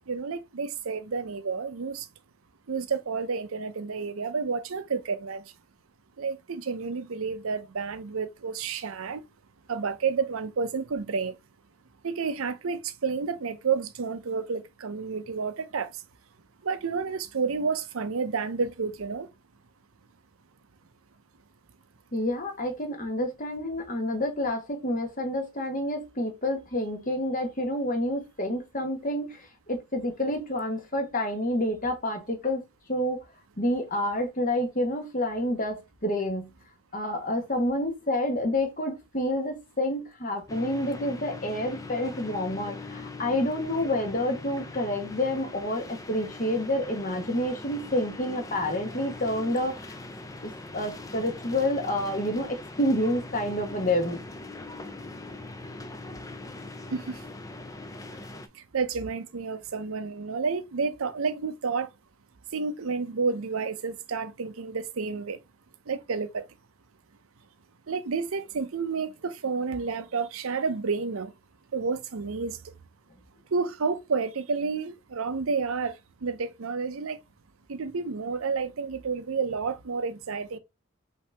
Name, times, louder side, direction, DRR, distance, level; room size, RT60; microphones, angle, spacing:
voice 1, 0.1-2.1 2.7-5.4 6.2-9.2 9.7-11.3 12.0-15.9 16.6-19.3 56.9-57.2 58.5-61.9 62.5-65.4 65.9-66.5 67.9-71.3 71.7-72.6 73.5-77.2 77.7-80.6, right 5 dB, 75° right, 0.6 m, -30 dB
voice 2, 22.1-32.6 32.9-33.2 33.6-36.5 36.9-50.0 50.4-54.2, left 1 dB, 35° left, 1.2 m, -28 dB
sound 1, 40.5-58.5, left 2 dB, 15° left, 0.4 m, -41 dB
5.6 x 2.8 x 3.4 m
head